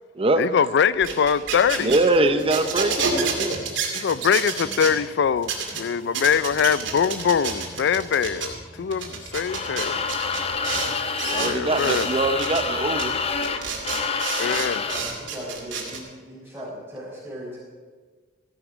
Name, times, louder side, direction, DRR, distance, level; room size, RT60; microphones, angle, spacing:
voice 1, 0.4-2.6 3.9-10.1 11.3-12.1 14.4-14.8, left 7 dB, 60° left, 0.4 m, -23 dB
sound 1, 0.9-4.9 5.4-5.8 6.1-8.5 8.9-10.9 11.2-12.1 12.4-12.6 13.0-13.1 13.4-16.0, right 5 dB, 75° right, 2.7 m, -29 dB
voice 2, 1.8-3.6 11.2-13.6 13.9-14.1, right 2 dB, 30° right, 0.7 m, -23 dB
sound 2, 5.2-13.2, equal, 45° left, 5.4 m, -46 dB
sound 3, 9.3-15.1, left 5 dB, 30° left, 0.7 m, -28 dB
voice 3, 14.5-17.6, equal, 10° right, 4.1 m, -38 dB
16.0 x 11.5 x 5.0 m
head